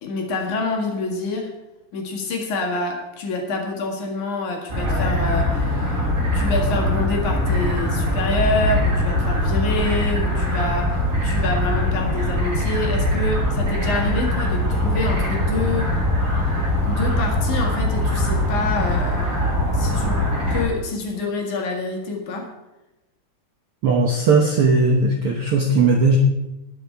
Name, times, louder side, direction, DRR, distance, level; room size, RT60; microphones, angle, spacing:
voice 1, 0.0-1.5 1.9-6.0 6.3-15.9 16.8-19.3 19.7-20.2 20.5-22.5, left 3 dB, 65° left, 1 dB, 3.3 m, -27 dB
sound 1, 4.7-20.6, left 1 dB, 25° right, 3.2 m, -22 dB
voice 2, 23.8-26.2, right 3 dB, 65° right, 1 dB, 1.4 m, -17 dB
20.0 x 7.2 x 4.6 m, 0.96 s
omnidirectional pair, 3.9 m